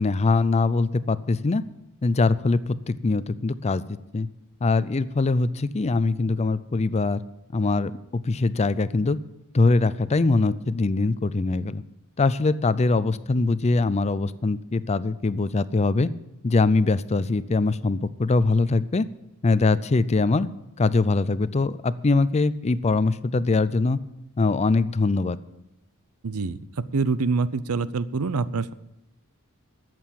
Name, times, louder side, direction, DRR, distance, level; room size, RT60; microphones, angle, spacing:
voice 1, 0.0-1.6 2.0-3.8 4.1-4.3 4.6-7.2 7.5-9.2 9.5-11.8 12.2-16.1 16.4-19.1 19.4-20.5 20.8-24.0 24.4-25.4, left 3 dB, 30° left, 16 dB, 0.5 m, -22 dB
voice 2, 26.2-26.6 26.9-28.7, right 4 dB, 75° right, 16 dB, 0.6 m, -25 dB
12.5 x 7.7 x 7.5 m, 0.91 s
head